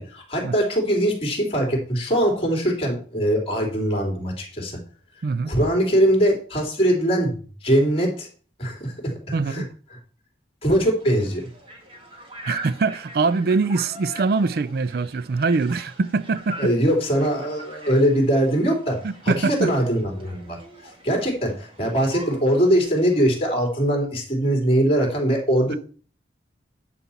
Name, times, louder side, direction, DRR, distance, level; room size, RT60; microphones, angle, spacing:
voice 1, 0.0-4.8 5.4-8.3 8.6-9.1 9.5-9.6 10.6-11.4 16.6-20.6 21.0-25.8, equal, 30° left, 3.4 m, -21 dB
voice 2, 5.2-5.5 9.3-9.7 12.4-16.7 19.0-19.7 25.7-25.8, right 4 dB, 55° right, 0.4 m, -23 dB
sound 1, 11.0-23.5, right 1 dB, 30° right, 2.1 m, -42 dB
11.0 x 4.3 x 7.2 m
head